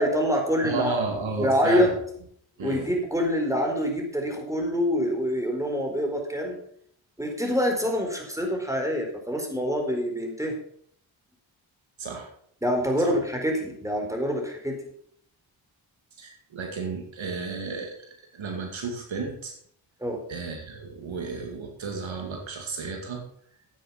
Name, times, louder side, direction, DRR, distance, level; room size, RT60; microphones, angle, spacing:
voice 1, 0.0-0.9 1.4-1.9 2.6-6.6 7.2-10.5 12.6-14.8 20.0-20.2, equal, 5° right, 2 dB, 4.4 m, -26 dB
voice 2, 0.6-1.9 2.6-2.9 12.0-12.3 13.0-13.1 16.2-18.0 18.3-19.6 20.3-23.2, right 4 dB, 70° right, 3 dB, 2.4 m, -32 dB
9.8 x 9.0 x 5.9 m, 0.65 s
cardioid pair, 50°, 48 cm